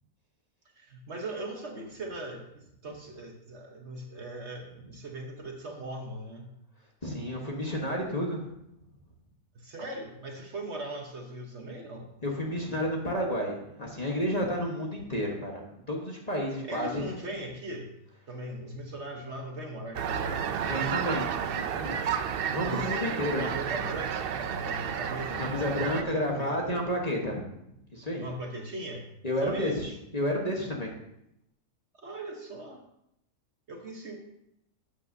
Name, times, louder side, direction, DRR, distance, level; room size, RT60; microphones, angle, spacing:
voice 1, 0.7-6.5 9.5-12.1 16.6-17.9 18.3-20.5 22.6-26.8 28.2-29.1 29.4-29.8 31.9-32.8 33.7-34.2, right 1 dB, 50° right, 2 dB, 1.3 m, -39 dB
voice 2, 7.0-8.4 12.2-15.6 15.9-17.0 20.6-22.0 22.5-23.5 25.4-27.5 27.9-28.2 29.2-30.9, equal, 25° left, -1 dB, 1.4 m, -31 dB
sound 1, 19.9-26.0, right 8 dB, 75° right, 0.5 m, -31 dB
12.0 x 8.4 x 2.7 m, 0.80 s
omnidirectional pair, 1.6 m